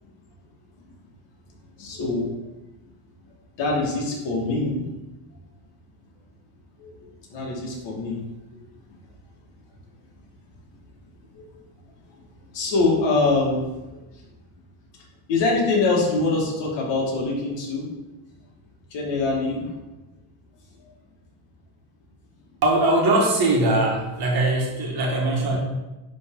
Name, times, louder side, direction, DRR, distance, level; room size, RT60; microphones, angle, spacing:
voice 1, 1.8-2.3 3.6-4.8 6.8-6.9 7.3-8.2 11.3-11.4 12.5-14.0 15.3-17.9 18.9-19.7, left 3 dB, 55° left, -3 dB, 2.3 m, -24 dB
voice 2, 22.6-25.6, right 2 dB, 50° right, -1 dB, 1.7 m, -21 dB
10.5 x 3.6 x 3.9 m, 1.1 s
cardioid pair, 150°, 50 cm